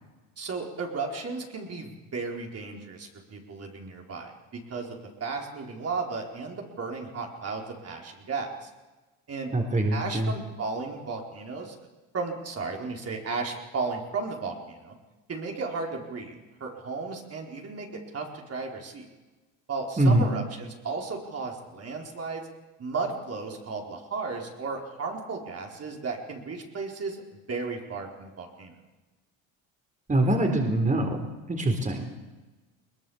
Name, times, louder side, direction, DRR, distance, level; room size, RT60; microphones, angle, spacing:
voice 1, 0.4-8.7 9.3-9.5 9.9-11.7 12.1-14.9 15.3-17.9 18.1-19.1 19.7-22.5 22.8-27.2 27.5-28.7, right 4 dB, 40° right, 1 dB, 4.5 m, -34 dB
voice 2, 9.5-10.3 20.0-20.3 30.1-32.1, right 1 dB, 20° right, 4 dB, 4.2 m, -24 dB
22.0 x 20.0 x 7.2 m, 1.2 s
supercardioid pair, 75°, 38 cm